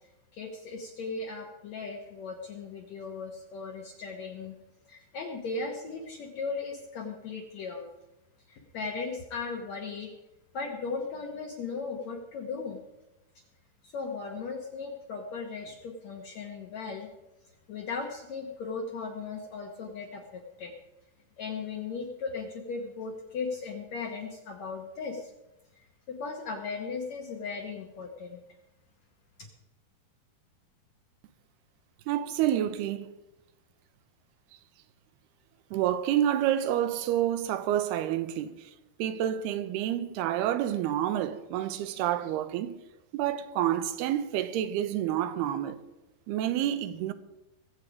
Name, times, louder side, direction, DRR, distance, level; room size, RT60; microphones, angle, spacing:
voice 1, 0.3-4.6 4.9-7.9 8.5-10.1 10.5-12.8 13.8-17.1 17.7-20.7 21.4-25.3 25.8-28.4 29.4-29.5, left 4 dB, 65° left, 1.8 m, -37 dB
voice 2, 32.1-33.1 35.7-38.7 39.0-42.7 43.1-45.8 46.3-47.1, right 11 dB, 80° right, 2.7 m, -28 dB
22.0 x 8.2 x 5.0 m
omnidirectional pair, 4.7 m